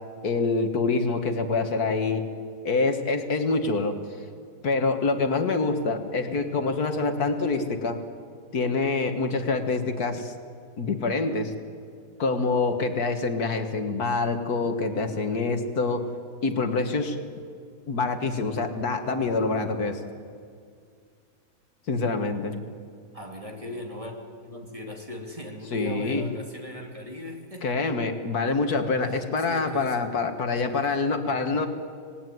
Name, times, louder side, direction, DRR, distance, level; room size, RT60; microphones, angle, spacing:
voice 1, 0.2-2.3 2.6-4.0 4.6-8.0 8.5-10.3 10.8-11.5 12.2-16.1 16.4-17.2 17.9-20.0 21.9-22.6 25.7-26.3 27.6-31.7, left 3 dB, 70° left, 7 dB, 2.1 m, -26 dB
voice 2, 23.1-24.1 24.4-27.8 29.1-30.1, left 1 dB, 20° right, 1 dB, 3.0 m, -39 dB
26.0 x 19.0 x 9.4 m, 2.2 s
omnidirectional pair, 1.7 m